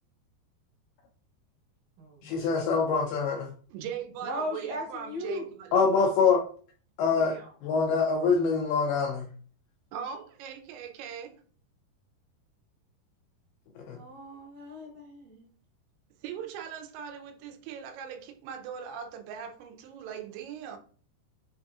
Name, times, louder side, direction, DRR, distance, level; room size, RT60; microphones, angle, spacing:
voice 1, 2.2-3.5 5.7-6.4 7.0-7.4 7.6-9.3 13.8-14.0, left 5 dB, 90° left, 2.2 m, -25 dB
voice 2, 3.7-5.9 9.9-11.4 16.2-20.8, right 8 dB, 90° right, 2.9 m, -40 dB
voice 3, 4.2-5.4 7.2-7.5 13.9-15.4, left 1 dB, 65° right, 2.3 m, -37 dB
6.5 x 2.7 x 2.4 m
omnidirectional pair, 5.0 m